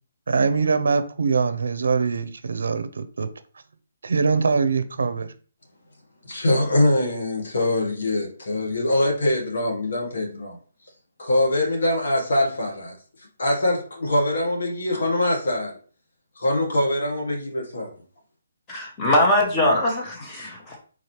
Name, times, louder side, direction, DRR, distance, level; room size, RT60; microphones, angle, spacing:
voice 1, 0.3-3.3 4.0-5.3, right 5 dB, 75° right, 0.5 m, -23 dB
voice 2, 6.2-10.6 11.2-12.9 13.4-15.8 16.4-17.9, left 1 dB, 75° left, 1.4 m, -23 dB
voice 3, 18.7-20.8, left 1 dB, 20° left, 0.9 m, -22 dB
3.8 x 2.8 x 3.1 m
hypercardioid pair, 155°, 0 cm